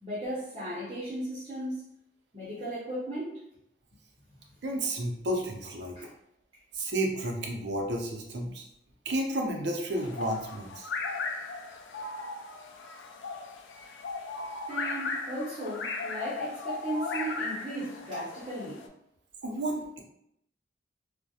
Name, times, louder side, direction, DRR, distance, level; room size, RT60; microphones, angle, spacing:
voice 1, 0.0-1.9 2.3-3.4 6.0-6.1 14.7-18.8, right 1 dB, 30° right, -9 dB, 0.7 m, -36 dB
voice 2, 4.6-6.0 6.7-8.6 9.1-10.9 19.4-20.0, right 1 dB, 70° right, 1 dB, 0.5 m, -31 dB
sound 1, 9.9-18.9, left 3 dB, 85° left, 0.3 m, -37 dB
2.4 x 2.0 x 2.7 m, 0.76 s
head